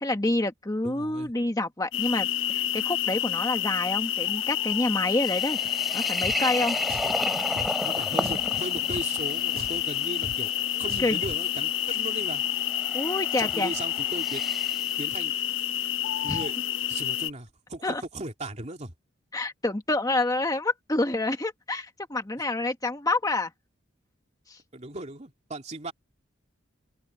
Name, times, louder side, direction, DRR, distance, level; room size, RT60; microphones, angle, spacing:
voice 1, 0.0-5.6 5.9-6.8 11.0-11.2 12.9-13.7 16.3-16.4 17.8-18.0 19.3-23.5 24.5-24.6, left 2 dB, 20° left, 1.3 m, -28 dB
voice 2, 0.8-1.3 7.0-7.3 7.8-10.5 10.8-12.4 13.4-14.4 15.0-15.3 16.2-16.5 16.8-18.9 24.7-25.9, right 2 dB, 35° right, 2.8 m, -37 dB
sound 1, 1.9-17.3, left 12 dB, 70° left, 0.8 m, -29 dB
sound 2, 5.2-15.0, equal, ahead, 3.4 m, -35 dB
Drum, 6.2-6.4 6.9-7.1 7.6-7.7 8.2-8.5 8.9-9.0 9.6-9.8 10.2-10.4 10.9-11.4, right 1 dB, 50° right, 2.5 m, -39 dB
open air
head